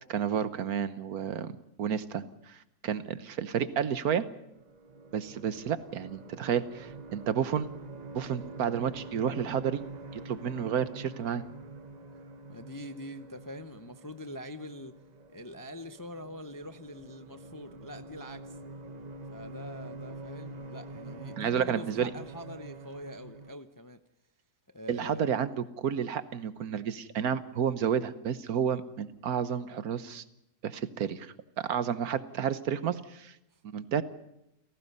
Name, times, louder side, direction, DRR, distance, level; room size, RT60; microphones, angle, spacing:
voice 1, 0.1-1.5 1.8-4.3 5.1-7.7 8.1-9.8 10.1-11.4 21.4-22.1 24.9-30.2 30.6-33.3 33.7-34.0, right 8 dB, 75° right, 13 dB, 1.5 m, -31 dB
sound 1, 4.2-23.5, right 2 dB, 35° right, 0.7 m, -46 dB
voice 2, 12.5-15.0 15.3-18.6 19.3-24.0 24.7-25.3 33.5-33.6, left 1 dB, 20° left, 10 dB, 0.5 m, -44 dB
29.5 x 17.5 x 5.5 m, 0.83 s
omnidirectional pair, 1.6 m